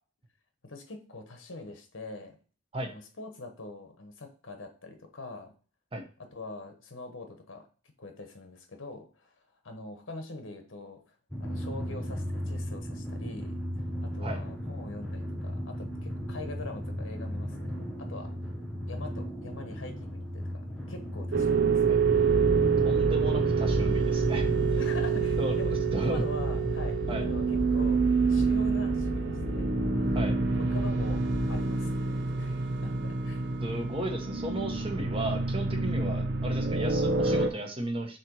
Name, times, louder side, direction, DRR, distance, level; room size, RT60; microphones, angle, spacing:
voice 1, 0.6-2.4 2.8-5.5 6.2-7.7 8.0-9.3 9.6-11.0 11.4-13.6 14.0-18.3 18.9-21.9 24.8-30.2 30.6-33.4, left 2 dB, 90° left, 6 dB, 1.1 m, -43 dB
Drum, 11.3-24.7, equal, 5° left, 1.0 m, -36 dB
sound 1, 21.3-37.5, right 5 dB, 60° right, 0.8 m, -27 dB
sound 2, 22.0-31.6, left 2 dB, 35° left, 0.6 m, -35 dB
voice 2, 22.8-24.4 25.4-25.6 25.9-26.3 27.1-27.3 30.1-30.3 33.6-38.2, right 1 dB, 30° right, 3 dB, 1.2 m, -34 dB
6.8 x 3.1 x 4.6 m, 0.38 s
head